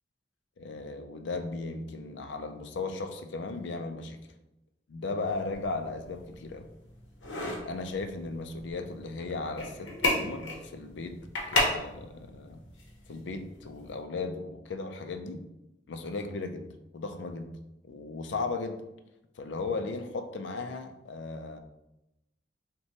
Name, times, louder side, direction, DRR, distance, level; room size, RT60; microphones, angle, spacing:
voice 1, 0.6-4.2 4.9-6.7 7.6-11.2 11.5-12.6 13.1-15.4 15.9-16.7 16.9-17.5 17.9-18.8 19.4-21.6, left 3 dB, 70° left, 7 dB, 0.4 m, -36 dB
sound 1, 5.2-14.0, left 2 dB, 90° left, 0.9 m, -35 dB
5.8 x 2.2 x 2.8 m, 0.91 s
head